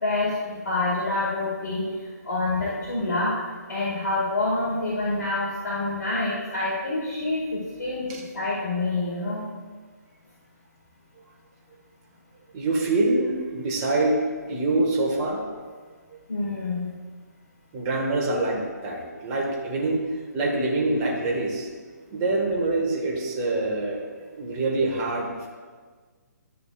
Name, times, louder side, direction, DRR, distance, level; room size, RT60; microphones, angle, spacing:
voice 1, 0.0-1.8 2.2-3.3 3.7-8.1 8.3-9.4 16.3-16.9, left 2 dB, 70° left, -7 dB, 2.0 m, -27 dB
voice 2, 12.5-14.2 14.5-15.4 17.7-20.0 20.3-21.7 22.1-25.5, right 2 dB, 25° right, -1 dB, 1.5 m, -25 dB
11.5 x 6.8 x 2.5 m, 1.5 s
figure-of-eight pair, 140°, 10 cm